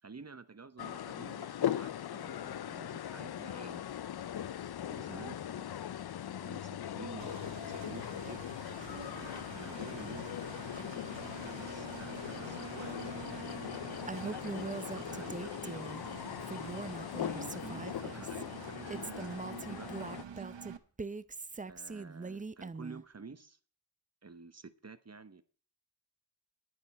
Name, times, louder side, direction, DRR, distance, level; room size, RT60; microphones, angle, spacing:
voice 1, 0.0-3.8 4.6-5.7 6.2-8.4 8.9-10.6 11.3-12.9 13.7-16.5 17.2-20.4 21.7-23.6 24.2-25.4, right 4 dB, 35° right, 0.9 m, -51 dB
sound 1, 0.8-20.2, left 10 dB, 60° left, 0.5 m, -40 dB
Engine, 7.2-20.8, right 7 dB, 75° right, 1.2 m, -48 dB
Female speech woman speaking, 14.1-16.0 16.4-18.4 18.9-23.0, right 4 dB, 20° right, 0.5 m, -42 dB
11.0 x 10.5 x 4.2 m
wide cardioid pair, 70°, 44 cm